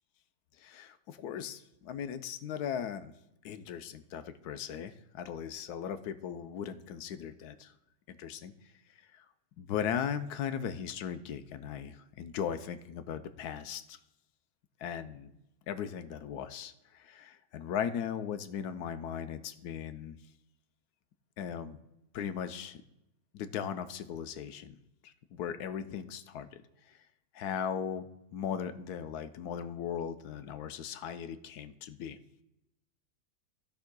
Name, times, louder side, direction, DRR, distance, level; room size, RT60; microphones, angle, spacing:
voice 1, 0.6-3.1 3.4-7.7 8.2-8.5 9.1-9.3 9.6-14.0 14.8-15.3 15.7-20.2 21.4-21.8 22.1-22.8 23.3-24.8 25.0-27.0 27.3-32.2, left 8 dB, 85° left, 10 dB, 1.2 m, -38 dB
15.5 x 5.7 x 2.2 m, 0.88 s
omnidirectional pair, 1.6 m